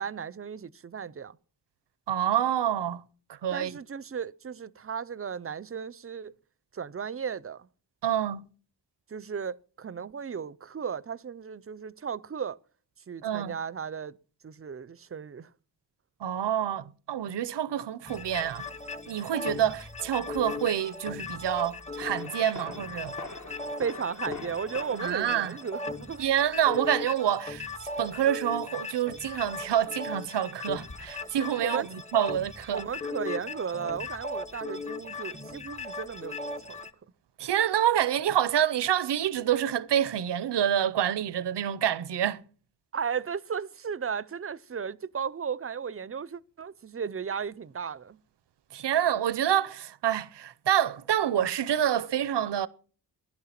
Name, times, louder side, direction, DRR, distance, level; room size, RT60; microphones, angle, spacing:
voice 1, 0.0-1.4 3.5-6.3 6.7-7.7 9.1-12.6 13.1-14.2 14.4-15.5 23.8-26.2 31.6-31.9 32.7-36.4 36.7-36.8 42.9-48.2, right 7 dB, 35° right, 0.6 m, -35 dB
voice 2, 2.1-3.0 3.3-3.8 8.0-8.5 13.2-13.5 16.2-18.7 19.1-23.2 24.9-25.6 26.2-27.7 28.0-32.8 37.4-42.4 48.7-52.7, right 10 dB, 80° right, 0.7 m, -27 dB
sound 1, 18.1-36.9, left 3 dB, 15° left, 1.0 m, -38 dB
sound 2, 20.4-20.7 22.0-26.4 30.9-31.3, left 3 dB, 45° left, 1.4 m, -45 dB
15.5 x 11.0 x 5.8 m
wide cardioid pair, 85°, 41 cm